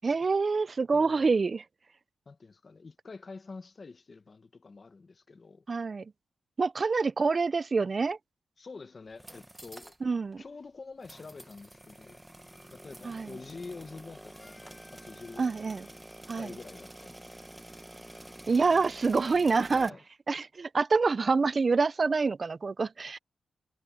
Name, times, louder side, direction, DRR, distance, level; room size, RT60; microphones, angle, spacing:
voice 1, 0.0-1.6 5.7-6.1 6.6-8.2 10.0-10.4 13.0-13.3 15.4-15.9 16.3-16.5 18.5-19.9 20.3-23.2, right 4 dB, 40° right, 0.4 m, -26 dB
voice 2, 0.9-1.3 2.3-5.7 8.6-9.9 10.4-12.2 12.7-15.4 16.3-17.2 19.7-20.0, left 4 dB, 40° left, 0.9 m, -47 dB
sound 1, 9.1-10.0 10.3-10.4 11.0-19.9, right 1 dB, 10° right, 1.1 m, -48 dB
Harmonica, 14.1-18.6, left 2 dB, 20° left, 5.6 m, -62 dB
wide cardioid pair, 115°, 0 cm